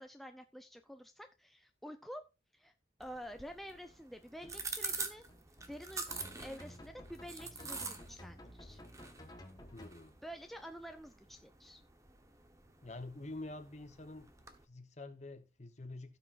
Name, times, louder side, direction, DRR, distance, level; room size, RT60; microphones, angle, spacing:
voice 1, 0.0-2.2 2.5-2.7 3.0-5.2 5.7-8.8 10.2-11.8, equal, ahead, 0.5 m, -49 dB
sound 1, 3.0-14.6, right 4 dB, 15° right, 1.0 m, -47 dB
sound 2, 4.4-9.9, left 1 dB, 20° left, 1.3 m, -53 dB
voice 2, 9.7-10.1 12.8-14.3 14.7-16.2, left 2 dB, 40° left, 1.0 m, -47 dB
16.5 x 6.2 x 2.5 m
head